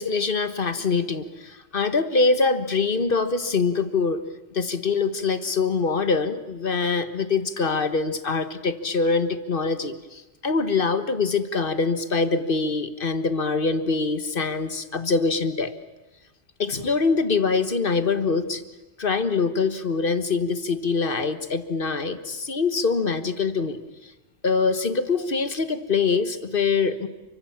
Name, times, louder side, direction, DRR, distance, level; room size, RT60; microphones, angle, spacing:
voice 1, 0.0-4.2 4.5-15.7 16.6-18.6 19.0-23.8 24.4-27.1, left 4 dB, 45° left, 11 dB, 1.6 m, -24 dB
29.5 x 24.0 x 7.3 m, 1.1 s
omnidirectional pair, 1.2 m